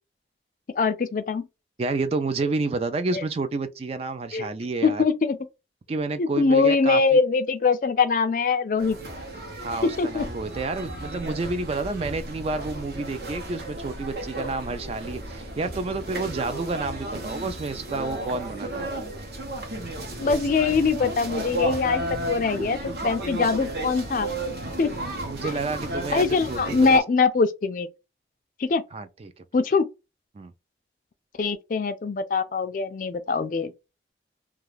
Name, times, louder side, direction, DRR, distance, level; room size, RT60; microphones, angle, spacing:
voice 1, 0.8-1.5 3.1-3.2 4.3-4.5 4.8-5.4 6.2-9.0 9.8-10.3 20.2-22.8 23.0-24.3 24.8-24.9 25.4-25.5 26.1-27.9 28.6-28.8 29.5-29.9 31.4-33.7, left 4 dB, 45° left, 0.3 m, -23 dB
voice 2, 1.8-5.0 5.9-7.2 9.6-18.9 25.3-26.8 28.9-29.3 30.4-30.5, right 3 dB, 35° right, 0.3 m, -30 dB
sound 1, 8.8-27.0, right 1 dB, 60° right, 0.8 m, -33 dB
2.4 x 2.3 x 3.2 m
head